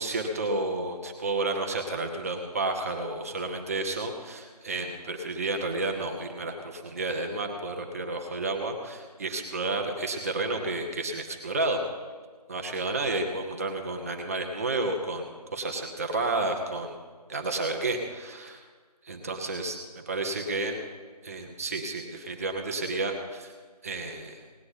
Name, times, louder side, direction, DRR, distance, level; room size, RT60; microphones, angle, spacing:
voice 1, 0.0-11.8 12.5-17.0 17.3-18.6 19.0-20.8 21.2-23.5 23.8-24.4, right 2 dB, 20° right, 3 dB, 0.9 m, -31 dB
18.5 x 9.3 x 4.1 m, 1.5 s
figure-of-eight pair, 160°, 21 cm